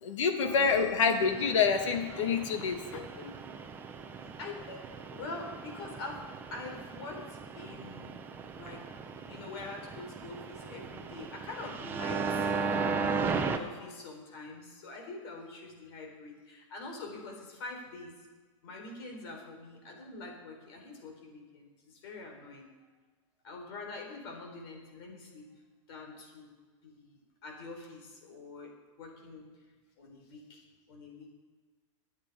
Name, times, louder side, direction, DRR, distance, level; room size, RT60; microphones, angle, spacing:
voice 1, 0.0-3.3, left 5 dB, 70° left, 5 dB, 2.1 m, -27 dB
voice 2, 0.8-1.3 4.2-4.8 5.1-8.1 8.5-8.8 9.3-12.3 13.2-18.1 18.6-22.7 23.4-25.5 25.9-26.6 26.8-28.7 29.0-29.5 30.0-31.3, left 3 dB, 50° left, 2 dB, 4.3 m, -45 dB
sound 1, 1.2-13.6, right 5 dB, 10° right, 0.7 m, -37 dB
23.5 x 9.0 x 4.9 m, 1.4 s
supercardioid pair, 170°, 16 cm